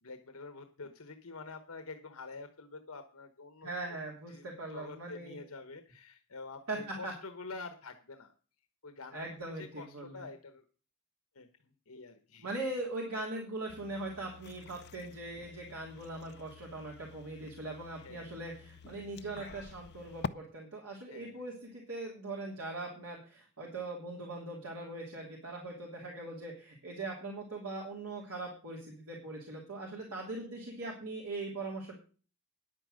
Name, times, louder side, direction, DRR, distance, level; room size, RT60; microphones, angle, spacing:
voice 1, 0.0-3.7 4.3-8.3 8.8-10.6 11.3-12.5 18.0-18.4 21.1-21.4 30.1-30.2, left 3 dB, 75° left, 8 dB, 1.1 m, -47 dB
voice 2, 3.6-5.4 6.7-7.1 9.1-10.2 12.4-31.9, right 2 dB, 85° right, -2 dB, 3.1 m, -41 dB
sound 1, 13.7-20.3, left 5 dB, 50° left, 0.5 m, -47 dB
10.0 x 8.8 x 6.4 m, 0.38 s
head